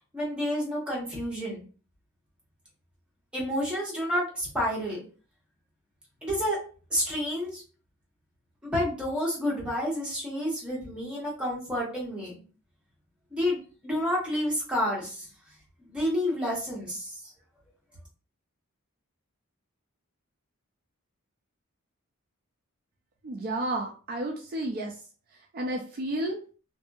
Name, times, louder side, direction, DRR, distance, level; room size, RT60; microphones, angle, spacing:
voice 1, 0.1-1.6 3.3-5.0 6.2-6.6 6.9-7.6 8.6-12.3 13.3-13.6 13.8-15.2 15.9-17.1, equal, 5° right, -5 dB, 1.2 m, -29 dB
voice 2, 23.2-25.0 25.5-26.4, right 1 dB, 45° right, 1 dB, 0.4 m, -31 dB
2.6 x 2.6 x 2.3 m, 0.38 s
head